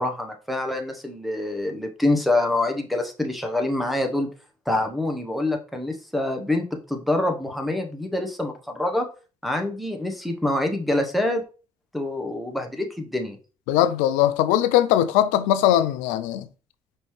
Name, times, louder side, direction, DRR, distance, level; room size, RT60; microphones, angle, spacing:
voice 1, 0.0-4.3 4.7-9.1 9.4-11.4 11.9-13.4, left 2 dB, ahead, 1.0 m, -26 dB
voice 2, 13.7-16.5, left 12 dB, 85° left, 0.4 m, -20 dB
5.2 x 2.7 x 3.2 m
hypercardioid pair, 55°, 12 cm